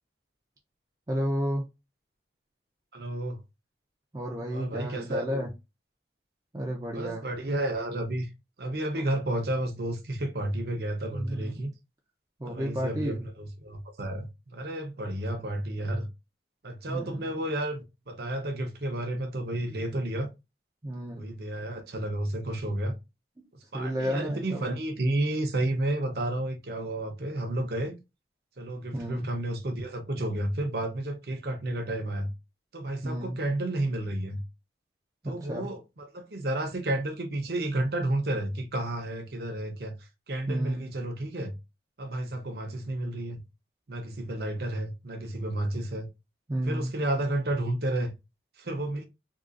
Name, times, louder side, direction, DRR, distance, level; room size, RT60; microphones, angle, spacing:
voice 1, 1.1-1.6 4.1-5.5 6.5-7.2 11.1-11.7 12.4-13.2 16.9-17.2 20.8-21.2 23.7-24.6 28.9-29.3 33.0-33.4 35.2-35.7 40.5-40.9 46.5-46.9, equal, 20° right, 0.5 m, -32 dB
voice 2, 2.9-3.4 4.5-5.5 6.9-8.3 8.6-11.7 12.4-16.1 16.6-20.3 21.1-22.9 23.7-27.9 28.6-32.3 32.7-34.4 35.2-39.9 40.3-41.5 42.0-43.4 43.9-46.1 46.7-48.1 48.6-49.1, right 1 dB, 55° right, 0.7 m, -31 dB
3.6 x 2.4 x 2.4 m
head